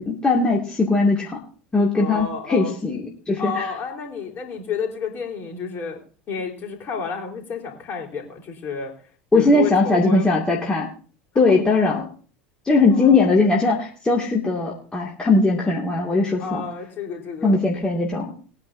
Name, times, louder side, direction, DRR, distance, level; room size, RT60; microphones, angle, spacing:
voice 1, 0.0-1.4 1.7-3.7 9.3-10.9 11.4-12.1 12.7-16.6 17.4-18.3, left 3 dB, 15° left, -3 dB, 2.3 m, -19 dB
voice 2, 2.0-2.7 3.4-6.0 6.3-8.9 9.3-10.4 12.9-13.4 16.4-17.6, left 5 dB, 35° left, 0 dB, 4.1 m, -30 dB
21.5 x 9.6 x 2.7 m, 0.40 s
figure-of-eight pair, 80°, 6 cm